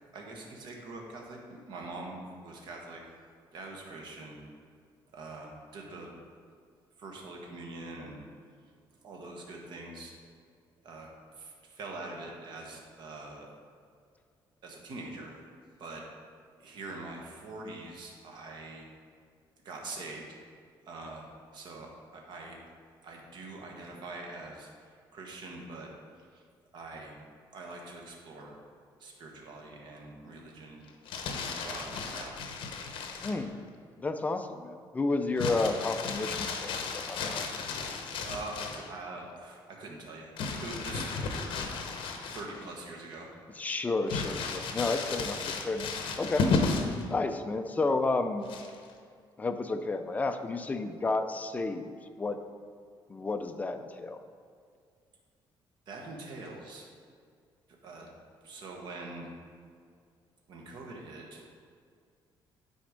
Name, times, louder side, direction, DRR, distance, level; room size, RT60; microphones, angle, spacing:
voice 1, 0.1-1.4 1.7-3.0 3.5-4.4 5.1-6.1 7.0-8.2 9.0-10.1 10.8-11.1 11.3-13.5 14.6-15.3 15.8-16.0 16.6-18.9 19.6-20.4 20.9-22.6 23.0-25.9 26.3-26.4 26.7-27.2 27.5-28.6 29.0-30.8 31.3-32.4 38.2-40.3 40.6-41.4 42.3-43.3 55.9-56.9 57.8-58.1 58.4-59.3 60.5-61.6, right 2 dB, 55° right, 0 dB, 1.2 m, -43 dB
Crumpling crinkling, 30.9-33.4 35.4-38.9 40.4-42.7 43.1-43.2 44.1-47.0 48.4-48.9, left 4 dB, 70° left, 0.8 m, -34 dB
voice 2, 33.2-33.6 34.0-37.5 43.6-45.9 46.2-46.5 47.1-48.5 49.4-51.9 52.2-52.4 53.1-54.2, left 3 dB, 15° left, 7 dB, 0.4 m, -31 dB
9.3 x 4.3 x 5.1 m, 2.2 s
cardioid pair, 165°, 9 cm